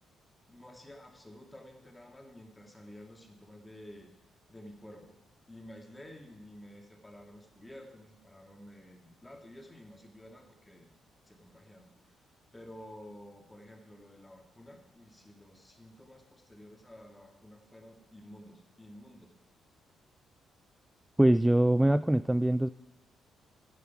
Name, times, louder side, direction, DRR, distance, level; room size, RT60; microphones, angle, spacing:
voice 1, 0.5-4.1 4.5-5.2 5.5-10.9 11.3-12.3 12.5-19.3, left 1 dB, 15° left, 3 dB, 2.5 m, -51 dB
voice 2, 21.2-22.7, right 1 dB, 10° right, 15 dB, 0.3 m, -23 dB
11.0 x 10.0 x 4.8 m, 0.91 s
hypercardioid pair, 40°, 0 cm